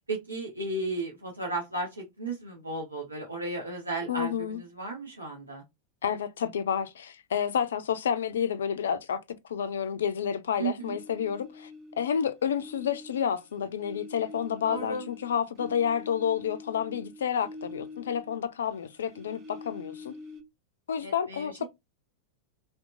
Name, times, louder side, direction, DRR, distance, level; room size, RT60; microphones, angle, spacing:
voice 1, 0.1-5.6 10.6-11.0 14.6-15.0 21.0-21.6, right 2 dB, 80° right, 0.7 m, -34 dB
voice 2, 4.1-4.6 6.0-9.2 9.5-11.7 12.0-20.1 20.9-21.6, left 8 dB, 65° left, 0.3 m, -30 dB
sound 1, 10.8-12.1 12.4-18.6 18.8-20.4, left 3 dB, 30° right, 0.7 m, -45 dB
2.8 x 2.0 x 2.5 m
figure-of-eight pair, 90°, 0 cm